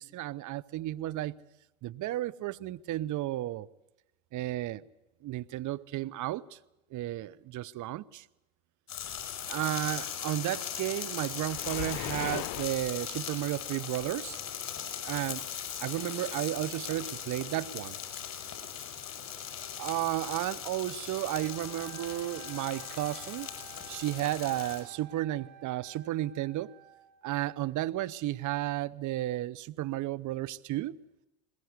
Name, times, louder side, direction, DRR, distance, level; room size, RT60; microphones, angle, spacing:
voice 1, 0.0-1.4 1.8-3.7 4.3-4.8 5.2-6.6 6.9-8.2 9.5-14.4 15.0-15.4 15.8-18.0 19.8-23.5 23.9-26.7 27.2-31.0, right 15 dB, 45° right, 0.8 m, -33 dB
sound 1, 8.9-24.8, left 8 dB, 40° left, 5.9 m, -39 dB
Waves surf, 11.4-12.9, left 17 dB, 60° left, 0.9 m, -38 dB
Wind instrument woodwind instrument, 21.3-27.3, right 11 dB, 65° right, 3.8 m, -52 dB
21.5 x 20.5 x 8.2 m
hypercardioid pair, 85°, 42 cm